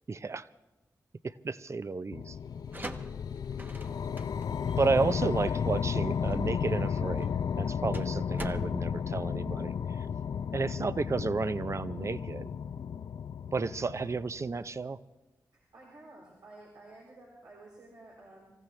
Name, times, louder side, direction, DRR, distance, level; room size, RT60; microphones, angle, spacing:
voice 1, 0.1-0.5 1.2-2.4 4.8-10.1 10.5-12.5 13.5-15.0, right 4 dB, 45° right, 15 dB, 0.6 m, -32 dB
sound 1, 2.1-14.6, left 7 dB, 70° left, 0.4 m, -33 dB
sound 2, 2.5-10.1, right 1 dB, 30° right, 1.1 m, -46 dB
voice 2, 15.5-18.5, right 2 dB, 85° right, -5 dB, 4.1 m, -52 dB
26.0 x 15.0 x 3.3 m, 1.1 s
cardioid pair, 45°, 7 cm